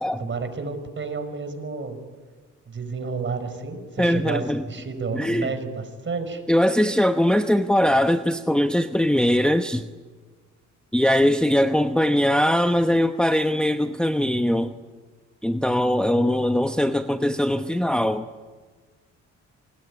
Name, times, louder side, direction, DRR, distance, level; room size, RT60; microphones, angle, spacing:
voice 1, 0.2-2.0 2.7-6.4 16.1-16.3, right 4 dB, 40° right, 9 dB, 5.2 m, -31 dB
voice 2, 4.0-4.6 5.1-5.5 6.5-9.8 10.9-14.7 15.4-18.3, left 1 dB, 5° left, 7 dB, 1.0 m, -21 dB
26.5 x 20.0 x 9.8 m, 1.4 s
cardioid pair, 90°, 30 cm